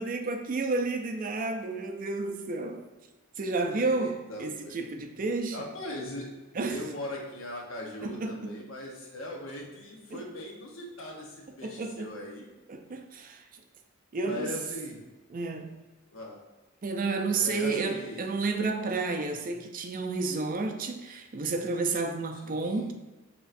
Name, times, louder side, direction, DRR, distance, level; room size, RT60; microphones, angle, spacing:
voice 1, 0.0-2.8 3.4-5.6 6.5-6.9 8.0-8.6 10.1-10.2 11.6-12.2 12.7-13.4 14.1-14.5 15.3-15.8 16.8-22.9, right 3 dB, 45° right, 0.4 m, -31 dB
voice 2, 3.6-4.9 5.5-6.3 6.7-12.5 14.2-15.0 16.1-16.4 17.3-18.4 22.4-22.9, left 1 dB, 75° left, 1.0 m, -40 dB
6.2 x 3.0 x 2.6 m
head